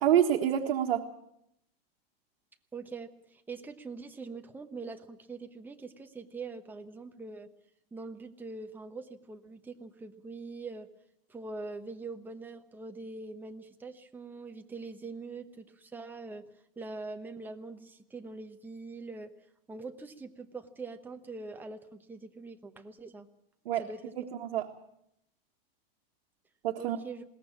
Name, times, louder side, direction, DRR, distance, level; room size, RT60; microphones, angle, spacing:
voice 1, 0.0-1.0 23.7-23.8 24.2-24.7 26.6-27.0, right 10 dB, 75° right, 2 dB, 1.7 m, -27 dB
voice 2, 2.7-7.5 7.9-10.9 11.3-16.5 16.8-19.3 19.7-23.3 23.8-24.1 26.8-27.2, right 3 dB, 5° right, 5 dB, 1.0 m, -43 dB
21.5 x 18.0 x 7.4 m, 0.78 s
supercardioid pair, 155°, 29 cm